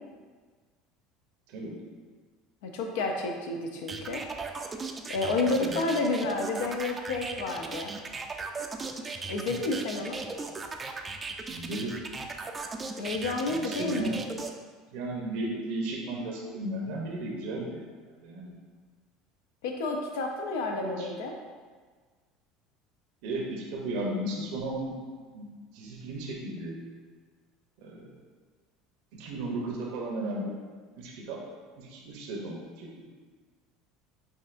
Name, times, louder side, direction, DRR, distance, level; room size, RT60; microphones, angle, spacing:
voice 1, 1.5-1.8 5.6-5.8 11.5-12.0 13.5-14.2 14.9-17.8 18.2-18.6 20.7-21.1 23.2-25.0 25.3-26.8 27.8-28.1 29.1-30.5 31.0-31.4 31.8-33.0, right 1 dB, 70° right, -1 dB, 0.7 m, -35 dB
voice 2, 2.6-4.2 5.1-7.9 9.3-10.2 13.0-14.2 19.6-21.4, left 2 dB, 80° left, 2 dB, 0.5 m, -30 dB
sound 1, 3.9-14.5, right 4 dB, 25° right, 0.3 m, -37 dB
5.2 x 2.5 x 2.5 m, 1.5 s
supercardioid pair, 90°, 0 cm